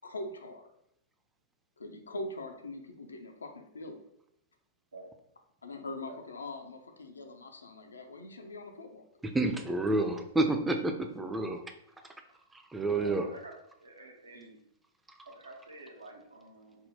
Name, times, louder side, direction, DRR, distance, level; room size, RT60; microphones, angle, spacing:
voice 1, 0.0-0.7 1.8-4.0 5.6-9.0, left 2 dB, 80° left, 5 dB, 0.4 m, -42 dB
voice 2, 9.3-11.6 12.5-13.3 15.3-15.4, right 2 dB, 10° right, 5 dB, 0.4 m, -29 dB
voice 3, 13.0-13.5 13.8-14.6 15.3-16.8, right 1 dB, 85° right, 2 dB, 0.6 m, -48 dB
3.5 x 2.1 x 2.7 m, 0.74 s
figure-of-eight pair, 105°, 0 cm